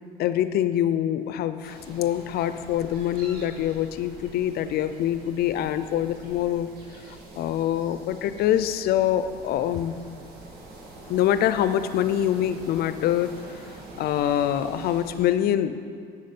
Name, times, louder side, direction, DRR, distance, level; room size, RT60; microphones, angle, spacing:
voice 1, 0.2-6.7 7.1-10.0 11.1-13.6 13.9-16.0, left 11 dB, 70° left, 12 dB, 0.5 m, -25 dB
sound 1, 1.6-15.3, right 2 dB, 70° right, 2.0 m, -45 dB
8.4 x 6.5 x 5.4 m, 2.3 s
cardioid pair, 110°, 17 cm